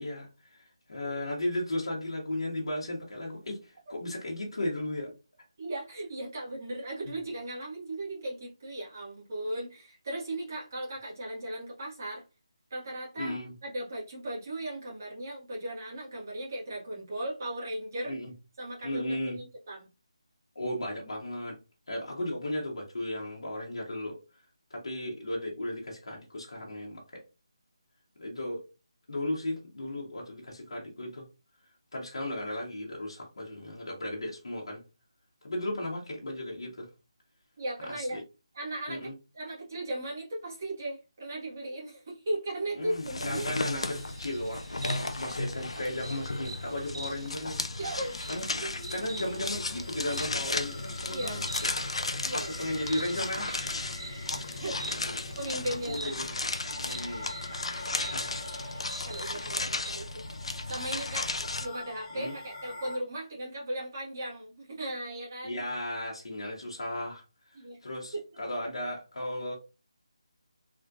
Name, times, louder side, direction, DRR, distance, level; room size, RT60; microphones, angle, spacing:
voice 1, 0.0-5.1 7.1-7.2 13.2-13.5 18.0-18.3 18.8-19.4 20.5-21.6 21.9-24.2 24.7-27.2 28.2-28.6 29.1-31.3 31.9-34.8 35.4-36.9 38.0-38.2 38.9-39.1 42.8-47.7 48.3-48.4 48.9-51.4 52.3-53.7 55.0-55.2 55.6-56.3 56.8-57.3 57.7-58.7 59.1-59.7 62.1-62.3 65.4-67.2 67.8-69.5, left 1 dB, 60° left, 1.5 m, -35 dB
voice 2, 5.6-12.2 12.7-13.4 13.6-18.2 18.6-19.9 37.6-38.2 38.5-43.5 47.8-48.2 48.6-48.7 51.1-51.5 52.2-52.5 54.6-54.8 55.3-56.2 59.0-60.2 60.7-61.3 61.6-65.6 67.5-67.8 68.1-68.3, right 1 dB, 30° right, 1.6 m, -37 dB
sound 1, 42.9-61.7, left 2 dB, 80° left, 0.5 m, -35 dB
Insect, 43.7-59.9, right 2 dB, 45° right, 0.9 m, -46 dB
sound 2, 48.0-63.0, left 2 dB, 15° left, 0.6 m, -45 dB
3.6 x 3.2 x 2.5 m
figure-of-eight pair, 175°, 3 cm